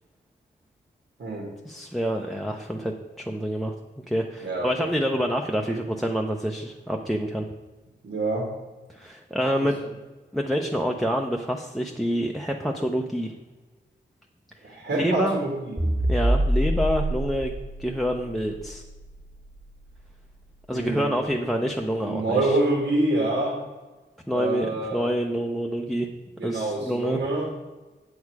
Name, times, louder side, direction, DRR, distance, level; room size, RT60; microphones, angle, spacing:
voice 1, 1.6-3.7 4.1-7.5 8.9-9.8 10.3-13.3 14.9-15.4 16.1-17.5 17.8-18.8 20.7-22.6 24.3-26.1 26.4-27.2, equal, ahead, 2 dB, 0.6 m, -27 dB
voice 2, 4.4-4.9 8.0-8.5 14.6-15.9 20.7-21.2 21.9-23.6 24.3-25.1 26.4-27.5, right 2 dB, 75° right, -1 dB, 2.0 m, -26 dB
sound 1, 15.8-20.3, right 1 dB, 20° right, 1.9 m, -27 dB
8.4 x 6.5 x 4.7 m, 1.2 s
wide cardioid pair, 115°, 19 cm